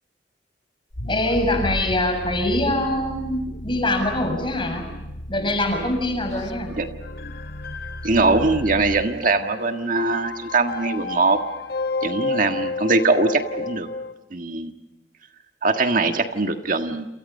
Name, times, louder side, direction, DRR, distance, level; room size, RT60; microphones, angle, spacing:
sound 1, 0.9-9.1, equal, 80° left, 2.1 m, -34 dB
voice 1, 1.1-4.8 5.3-6.7, left 1 dB, 25° left, 5 dB, 6.7 m, -23 dB
sound 2, 7.0-14.1, left 3 dB, 55° left, 1.6 m, -32 dB
voice 2, 8.0-11.4 12.0-13.9 14.3-14.7 15.6-17.1, right 3 dB, 45° right, 6 dB, 1.6 m, -21 dB
29.0 x 28.5 x 5.5 m, 1.0 s
head